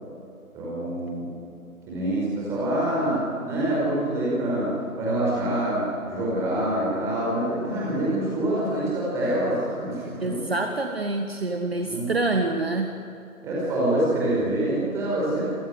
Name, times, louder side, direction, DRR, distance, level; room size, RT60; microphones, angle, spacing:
voice 1, 0.5-1.3 1.9-10.4 11.7-12.1 13.4-15.5, right 1 dB, 5° right, -6 dB, 5.1 m, -26 dB
voice 2, 10.2-12.9, right 2 dB, 40° right, 5 dB, 1.6 m, -26 dB
27.5 x 17.5 x 9.9 m, 2.7 s
figure-of-eight pair, 155°, 44 cm